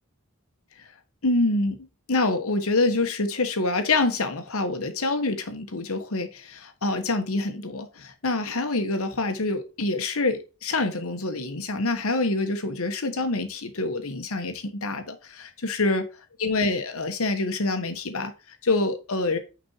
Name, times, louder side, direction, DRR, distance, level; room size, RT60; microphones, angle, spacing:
voice 1, 1.2-1.8 2.1-16.0 16.4-19.4, left 2 dB, 90° left, 1.4 m, -26 dB
6.1 x 5.4 x 4.5 m
head